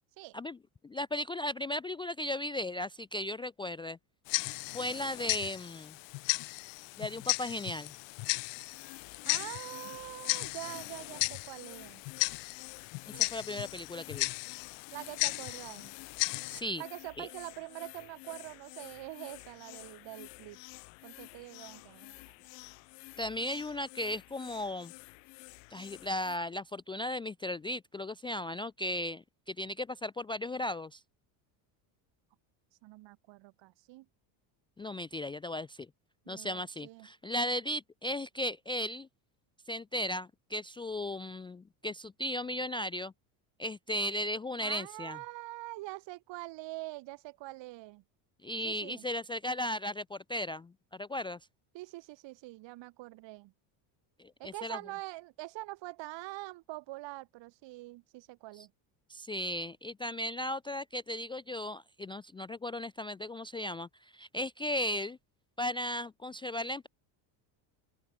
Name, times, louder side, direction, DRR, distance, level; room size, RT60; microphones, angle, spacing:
voice 1, 0.8-4.0 4.7-6.0 7.0-7.9 13.1-14.3 16.5-16.8 17.2-17.3 23.2-24.9 25.7-31.0 34.8-35.9 36.3-39.1 39.7-43.1 43.6-45.2 48.4-51.4 54.2-54.8 58.6-58.7 59.1-65.2 65.6-66.9, left 1 dB, 10° left, 0.4 m, -36 dB
Tick-tock, 4.3-16.6, left 30 dB, 65° left, 0.5 m, -36 dB
sound 1, 8.7-26.4, left 40 dB or more, 85° left, 1.9 m, -51 dB
voice 2, 9.2-12.0 13.1-13.3 14.9-15.9 16.8-20.6 21.0-22.2 32.8-34.1 36.2-37.1 44.6-48.0 48.6-49.0 51.7-53.5 54.4-58.7, right 19 dB, 60° right, 5.0 m, -44 dB
open air
cardioid pair, 140°, 48 cm